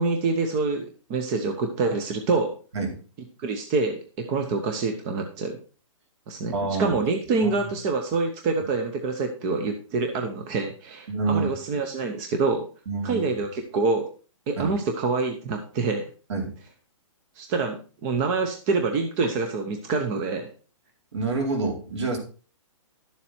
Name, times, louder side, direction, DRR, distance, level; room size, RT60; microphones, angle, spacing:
voice 1, 0.0-2.5 3.4-5.6 6.3-6.5 6.8-12.6 13.0-14.1 14.5-16.0 17.4-20.5, right 4 dB, 15° right, 5 dB, 0.8 m, -26 dB
voice 2, 6.5-7.0 7.4-7.5 11.1-11.5 12.9-13.2 14.6-14.7 16.3-16.5 21.1-22.2, right 3 dB, 60° right, 1 dB, 4.3 m, -27 dB
12.0 x 7.4 x 4.4 m, 0.38 s
hypercardioid pair, 175°, 17 cm